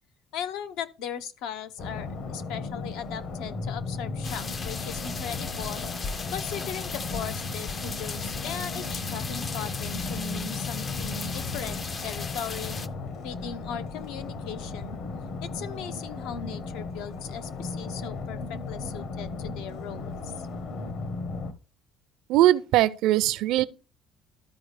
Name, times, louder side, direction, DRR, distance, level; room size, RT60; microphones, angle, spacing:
voice 1, 0.3-5.8 6.3-12.8 13.2-15.0 15.4-20.5, left 8 dB, 80° left, 0.7 m, -38 dB
sound 1, 1.8-21.5, left 3 dB, 50° left, 1.0 m, -35 dB
sound 2, 4.2-12.9, left 4 dB, 25° left, 0.3 m, -36 dB
voice 2, 22.3-23.6, right 15 dB, 70° right, 0.4 m, -21 dB
12.5 x 4.7 x 3.2 m
cardioid pair, 170°, 0 cm